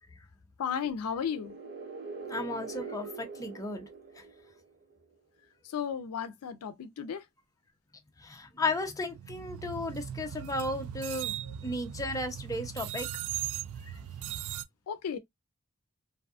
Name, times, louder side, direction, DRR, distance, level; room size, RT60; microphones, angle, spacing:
voice 1, 0.6-1.5 5.7-7.2 14.9-15.2, left 7 dB, 85° left, 0.4 m, -34 dB
sound 1, 1.2-4.9, right 4 dB, 45° right, 1.4 m, -43 dB
voice 2, 2.3-3.9 8.2-11.3 11.6-13.1, left 2 dB, 15° left, 0.5 m, -34 dB
sound 2, 9.1-14.6, right 11 dB, 70° right, 0.3 m, -38 dB
2.6 x 2.3 x 2.3 m
head